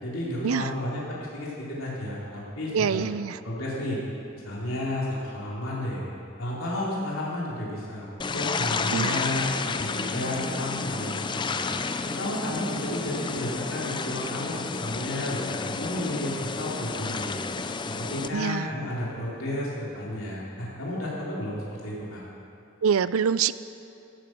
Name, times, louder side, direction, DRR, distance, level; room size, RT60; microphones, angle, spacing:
voice 1, 0.0-3.0 3.4-4.0 4.4-6.0 6.4-8.1 8.3-11.7 12.2-17.3 17.9-22.2, left 1 dB, 80° left, -6 dB, 3.6 m, -32 dB
voice 2, 2.7-3.4 8.9-9.3 18.3-18.7 22.8-23.5, right 7 dB, 90° right, 16 dB, 0.4 m, -25 dB
sound 1, 8.2-18.3, left 4 dB, 20° left, 0.4 m, -31 dB
15.5 x 11.0 x 6.1 m, 2.8 s
head